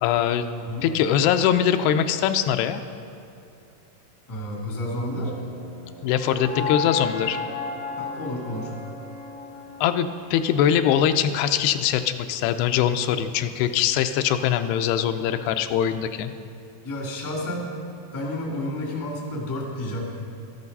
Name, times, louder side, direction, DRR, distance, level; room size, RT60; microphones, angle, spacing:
voice 1, 0.0-0.5 0.8-2.8 6.0-7.4 9.8-16.3, left 9 dB, 85° left, 8 dB, 2.6 m, -22 dB
voice 2, 0.5-0.9 4.3-5.3 6.5-6.7 8.0-8.7 16.8-17.7 18.1-20.0, left 1 dB, 15° left, -2 dB, 0.8 m, -31 dB
sound 1, 4.9-11.0, left 5 dB, 50° right, 0.7 m, -34 dB
13.0 x 11.0 x 5.4 m, 2.7 s
omnidirectional pair, 4.6 m